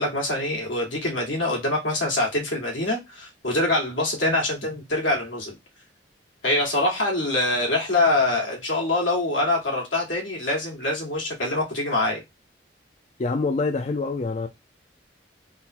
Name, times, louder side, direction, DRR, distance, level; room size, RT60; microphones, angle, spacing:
voice 1, 0.0-5.6 6.4-12.2, left 2 dB, 85° left, 1.7 m, -24 dB
voice 2, 13.2-14.5, left 3 dB, 35° left, 0.3 m, -25 dB
3.7 x 2.1 x 4.3 m
head